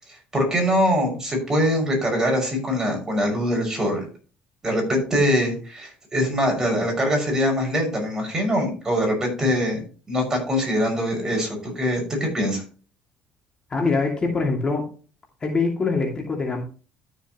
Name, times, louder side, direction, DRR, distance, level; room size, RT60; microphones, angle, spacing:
voice 1, 0.3-4.0 4.6-9.8 10.1-12.6, equal, 15° right, 1 dB, 6.3 m, -23 dB
voice 2, 13.7-14.9 15.4-16.6, left 4 dB, 25° left, 0 dB, 2.5 m, -23 dB
13.0 x 7.2 x 3.1 m, 0.37 s
cardioid pair, 120°, 3 cm